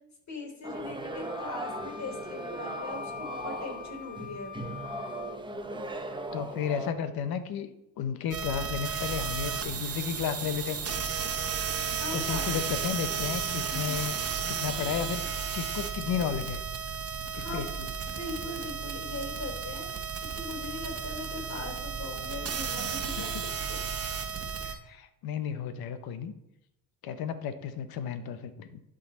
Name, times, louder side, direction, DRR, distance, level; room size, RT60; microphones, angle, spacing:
voice 1, 0.3-4.5 12.0-12.5 17.3-17.7 18.1-20.0 20.3-23.8, left 2 dB, 45° left, 2 dB, 3.3 m, -40 dB
sound 1, 0.6-6.9, right 2 dB, 10° right, 1.1 m, -38 dB
Wind instrument woodwind instrument, 1.1-5.4, left 8 dB, 20° left, 1.9 m, -43 dB
voice 2, 6.3-7.7 8.0-11.1 12.1-14.2 14.5-16.6 17.3-17.9 23.2-23.4 24.6-26.3 27.0-28.8, left 8 dB, 70° left, 10 dB, 1.0 m, -33 dB
sound 2, 8.3-24.8, right 6 dB, 40° right, 1.2 m, -33 dB
11.5 x 3.9 x 4.2 m, 0.83 s
supercardioid pair, 70°, 38 cm